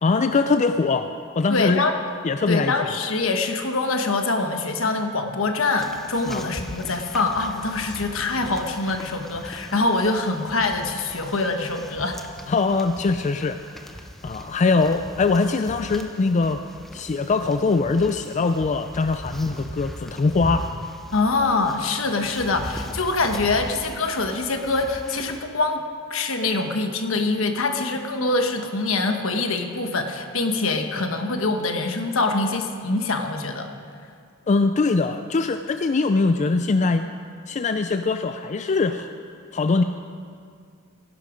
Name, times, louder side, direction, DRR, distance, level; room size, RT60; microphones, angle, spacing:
voice 1, 0.0-1.1 1.4-1.8 2.2-2.7 6.3-6.4 12.5-13.9 14.2-16.6 16.9-20.7 34.5-37.1 37.5-39.1 39.5-39.8, left 3 dB, 35° left, 9 dB, 0.4 m, -22 dB
voice 2, 1.5-2.0 2.5-12.2 21.1-25.8 26.1-33.7, left 3 dB, 70° left, 5 dB, 1.2 m, -24 dB
sound 1, 5.8-25.4, equal, ahead, 0.8 m, -40 dB
16.5 x 11.0 x 5.1 m, 2.2 s
head